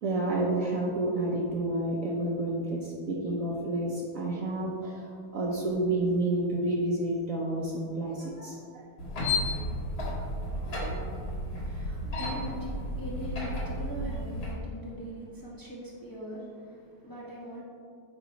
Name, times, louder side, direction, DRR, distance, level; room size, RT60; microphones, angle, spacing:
voice 1, 0.0-8.8 10.7-11.0 12.0-12.3, right 2 dB, 65° right, -2 dB, 0.8 m, -30 dB
sound 1, 9.0-14.5, left 1 dB, 50° left, 2.1 m, -33 dB
voice 2, 11.5-17.6, equal, 35° left, -6 dB, 0.3 m, -41 dB
8.8 x 3.0 x 4.6 m, 2.2 s
omnidirectional pair, 2.2 m